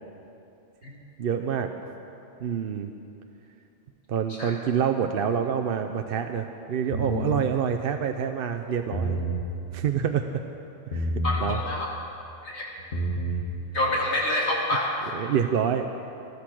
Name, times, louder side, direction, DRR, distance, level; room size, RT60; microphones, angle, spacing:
voice 1, 1.2-1.7 2.4-2.9 4.1-9.2 9.7-10.3 10.9-11.1 11.4-11.6 15.1-15.9, right 8 dB, 60° right, 6 dB, 0.7 m, -27 dB
sound 1, 6.9-7.4 8.8-9.4 10.9-11.5 12.8-13.4, right 1 dB, 80° left, 2.0 m, -28 dB
voice 2, 11.2-11.9 12.4-12.6 13.7-15.0, left 1 dB, 65° left, -3 dB, 2.6 m, -27 dB
14.0 x 13.0 x 6.1 m, 2.8 s
omnidirectional pair, 1.2 m